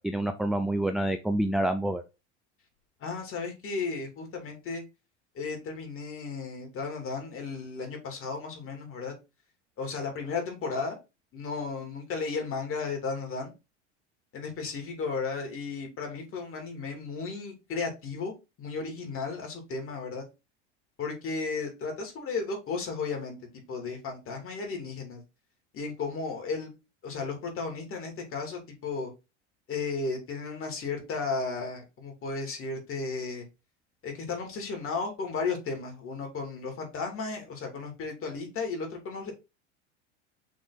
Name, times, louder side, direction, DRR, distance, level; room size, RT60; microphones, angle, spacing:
voice 1, 0.0-2.0, right 1 dB, ahead, 7 dB, 0.4 m, -27 dB
voice 2, 3.0-4.8 5.3-9.1 9.8-11.0 11.3-13.5 14.3-18.3 18.6-20.2 21.0-23.4 23.7-25.2 25.7-26.7 27.0-29.1 29.7-33.4 34.0-39.4, left 4 dB, 35° left, 3 dB, 3.0 m, -34 dB
6.3 x 3.6 x 4.1 m, 0.26 s
hypercardioid pair, 105°, 36 cm